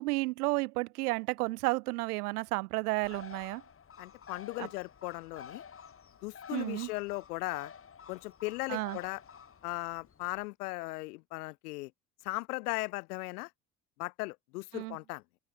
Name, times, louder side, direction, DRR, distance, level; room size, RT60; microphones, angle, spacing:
voice 1, 0.0-3.6 6.5-6.9 8.7-9.0 14.7-15.0, right 23 dB, 85° right, 0.7 m, -32 dB
Bird, 3.0-10.4, left 7 dB, 30° left, 2.0 m, -51 dB
voice 2, 4.0-5.6 6.2-7.7 8.1-9.2 9.6-11.9 12.2-13.5 14.0-15.2, left 23 dB, 85° left, 0.6 m, -37 dB
open air
hypercardioid pair, 80°, 44 cm